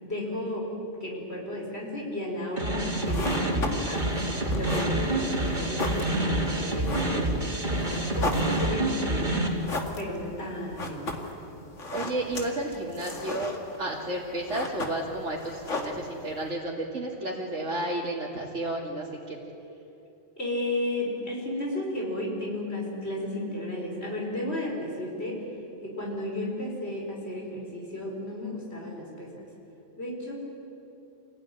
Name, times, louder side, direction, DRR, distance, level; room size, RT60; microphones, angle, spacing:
voice 1, 0.0-0.7 1.0-9.6 10.0-11.3 20.4-25.5 25.8-29.5 30.0-30.3, left 1 dB, 60° left, -1 dB, 5.4 m, -33 dB
sound 1, 2.6-9.5, right 1 dB, 40° right, 2.7 m, -28 dB
sound 2, 2.9-16.5, left 2 dB, 85° left, 2.4 m, -37 dB
voice 2, 11.9-13.5 13.8-19.4, right 1 dB, 85° right, -5 dB, 2.8 m, -32 dB
27.0 x 17.0 x 9.9 m, 2.9 s
omnidirectional pair, 1.2 m